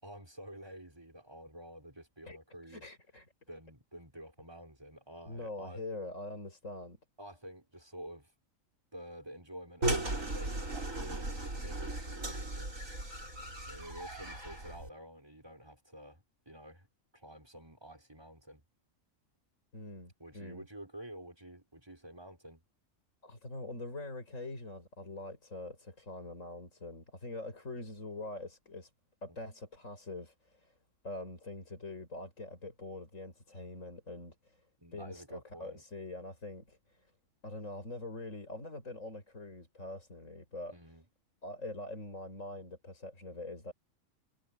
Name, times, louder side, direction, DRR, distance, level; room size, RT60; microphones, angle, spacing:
voice 1, 0.0-2.9 3.5-5.8 7.2-8.3 8.9-12.8 13.7-16.9 17.1-18.6 20.2-22.6 34.8-35.8 40.7-41.0, right 1 dB, 20° right, 5.0 m, -50 dB
voice 2, 2.7-3.3 5.3-7.0 19.7-20.6 23.2-28.9 29.2-30.7 31.0-34.7 34.9-37.1 37.4-40.7 41.4-43.7, left 2 dB, 70° left, 6.6 m, -44 dB
sound 1, 9.8-14.9, right 2 dB, 75° right, 5.7 m, -37 dB
omnidirectional pair, 1.4 m